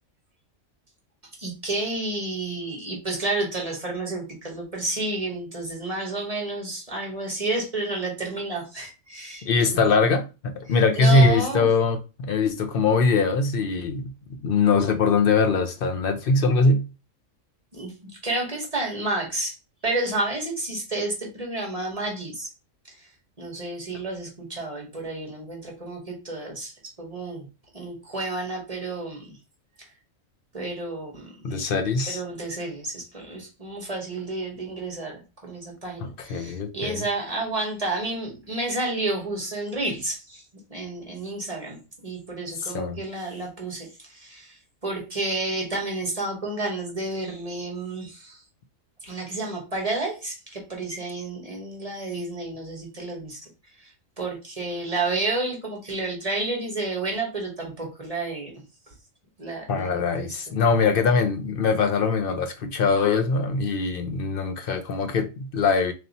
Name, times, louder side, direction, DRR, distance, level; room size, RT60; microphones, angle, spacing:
voice 1, 1.4-9.9 10.7-11.7 17.7-17.9 18.2-19.6 19.8-22.5 22.8-23.1 23.4-27.5 27.7-29.4 30.5-31.6 32.1-40.4 40.7-48.4 49.0-58.5 58.9-59.0 59.4-60.6, right 2 dB, 30° right, 1.1 m, -31 dB
voice 2, 9.5-14.1 14.4-16.8 31.4-32.2 36.3-37.0 42.7-43.0 59.7-65.9, left 4 dB, 60° left, 0.6 m, -22 dB
3.2 x 2.7 x 4.0 m
omnidirectional pair, 1.4 m